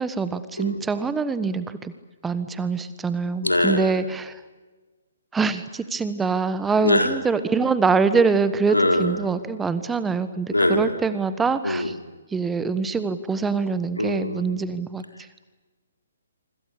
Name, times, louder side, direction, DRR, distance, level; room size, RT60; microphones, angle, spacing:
voice 1, 0.0-1.9 2.2-4.3 5.3-11.9 12.3-15.0, right 4 dB, 10° right, 13 dB, 1.3 m, -24 dB
voice 2, 3.4-3.9 6.8-7.1 8.7-9.2 10.5-10.9 11.6-11.9 14.0-14.7, left 1 dB, 80° left, 6 dB, 3.8 m, -22 dB
26.5 x 25.0 x 8.6 m, 1.3 s
figure-of-eight pair, 130°, 0 cm